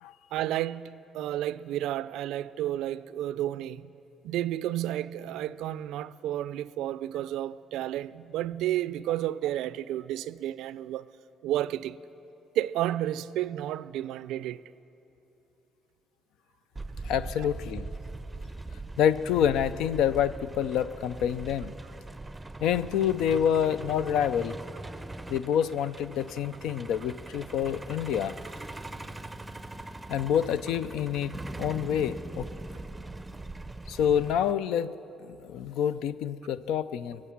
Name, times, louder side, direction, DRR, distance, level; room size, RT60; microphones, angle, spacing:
voice 1, 0.3-3.9 4.2-11.1 11.4-12.0 12.5-14.6 17.4-17.5, right 13 dB, 90° right, 0.3 m, -31 dB
Truck, 16.8-34.5, right 2 dB, 10° right, 0.5 m, -41 dB
voice 2, 17.0-17.9 19.0-21.7 22.6-24.6 25.3-28.4 30.1-32.5 33.9-34.9 35.2-37.2, left 9 dB, 85° left, 0.4 m, -27 dB
21.0 x 7.5 x 8.5 m
cardioid pair, 100°, 0 cm